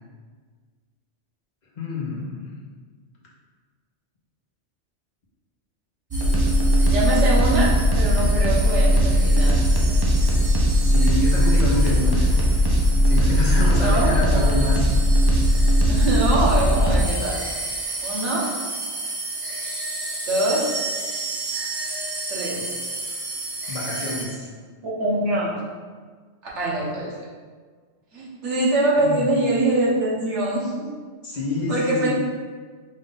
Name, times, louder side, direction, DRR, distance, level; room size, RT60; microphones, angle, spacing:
voice 1, 1.7-2.5 10.8-12.4 13.0-14.8 23.7-24.5 29.0-29.3 31.2-32.1, left 3 dB, 40° left, -4 dB, 1.0 m, -27 dB
sound 1, 6.1-24.2, equal, 30° right, 0.5 m, -20 dB
voice 2, 6.9-9.6 13.8-14.4 15.9-17.4 18.0-18.6 20.3-20.8 22.3-22.7 24.8-25.6 26.5-27.2 28.1-31.0 31.7-32.1, right 1 dB, 75° right, -6 dB, 1.4 m, -23 dB
5.1 x 2.5 x 3.8 m, 1.6 s
omnidirectional pair, 1.2 m